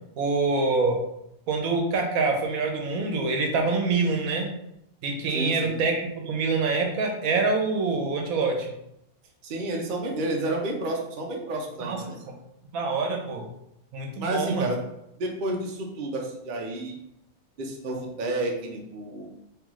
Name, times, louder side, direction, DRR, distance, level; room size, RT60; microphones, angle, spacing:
voice 1, 0.2-1.0 1.5-4.5 5.0-8.7 11.8-12.0 12.7-13.5 13.9-14.7, right 3 dB, 75° right, 2 dB, 1.1 m, -25 dB
voice 2, 5.3-5.8 9.4-12.2 14.2-14.8 15.2-17.0 17.6-19.3, right 2 dB, 50° right, 1 dB, 0.7 m, -30 dB
3.7 x 3.2 x 3.0 m, 0.81 s
omnidirectional pair, 1.5 m